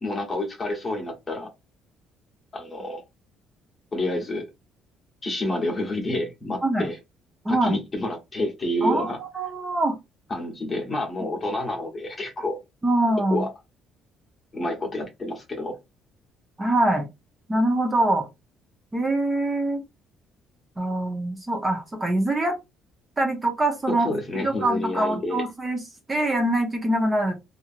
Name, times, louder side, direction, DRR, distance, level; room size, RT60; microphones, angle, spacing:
voice 1, 0.0-1.5 2.5-3.0 3.9-4.5 5.2-7.0 7.5-9.2 10.3-12.6 13.3-13.5 14.5-15.8 23.9-25.4, left 1 dB, 25° left, 1.0 m, -29 dB
voice 2, 7.4-7.8 8.8-10.0 12.8-13.4 16.6-17.1 17.5-18.3 18.9-19.8 20.8-22.5 23.2-24.1 24.4-25.8 26.1-27.3, right 1 dB, 20° right, 0.7 m, -24 dB
2.8 x 2.6 x 2.5 m
cardioid pair, 120°, 0 cm